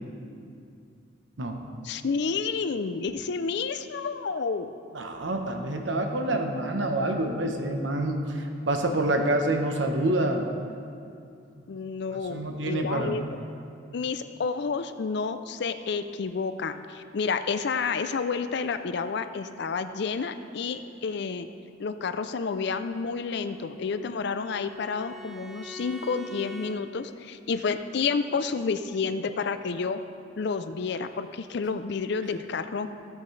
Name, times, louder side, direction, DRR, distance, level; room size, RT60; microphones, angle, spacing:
voice 1, 1.8-4.7 11.7-13.2 13.9-21.5 21.8-30.0 30.4-32.9, left 5 dB, 60° left, 10 dB, 0.5 m, -30 dB
voice 2, 4.9-10.5 11.6-11.7 12.3-13.2, right 1 dB, 70° right, 4 dB, 1.0 m, -27 dB
Bowed string instrument, 23.3-26.8, equal, ahead, 0.7 m, -44 dB
15.5 x 8.3 x 3.3 m, 2.5 s
head